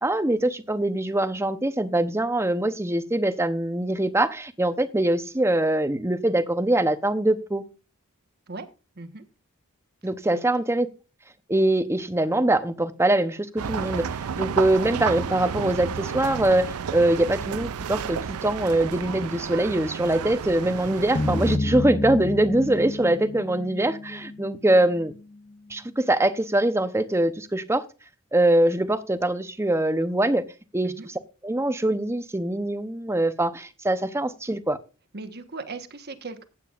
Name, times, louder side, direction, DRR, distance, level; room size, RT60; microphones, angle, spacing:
voice 1, 0.0-7.6 10.0-10.9 11.5-25.1 25.7-27.8 28.3-30.4 30.7-31.1 31.4-34.8, right 1 dB, 10° right, 11 dB, 0.8 m, -23 dB
voice 2, 10.2-10.6 30.8-31.1 35.1-36.5, right 3 dB, 45° right, 9 dB, 1.3 m, -38 dB
sound 1, 13.6-21.6, right 7 dB, 80° right, 0.5 m, -31 dB
sound 2, 21.2-25.5, left 2 dB, 25° left, 0.7 m, -30 dB
15.0 x 9.0 x 2.5 m, 0.31 s
head